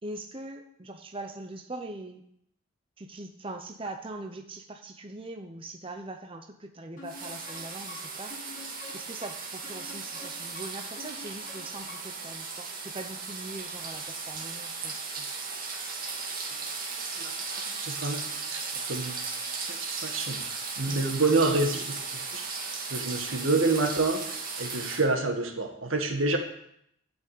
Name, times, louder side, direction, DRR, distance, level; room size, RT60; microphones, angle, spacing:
voice 1, 0.0-2.2 3.0-8.3 8.9-15.3 20.9-21.0, right 2 dB, 25° right, 4 dB, 0.8 m, -41 dB
sound 1, 7.0-12.3, left 3 dB, 40° left, 6.2 m, -48 dB
sound 2, 7.1-25.0, right 4 dB, 45° right, 2.3 m, -36 dB
voice 2, 17.7-18.2 18.5-18.6 18.9-19.2 19.7-22.4 22.9-26.4, right 3 dB, 80° right, 5 dB, 1.8 m, -28 dB
12.0 x 6.2 x 8.3 m, 0.73 s
head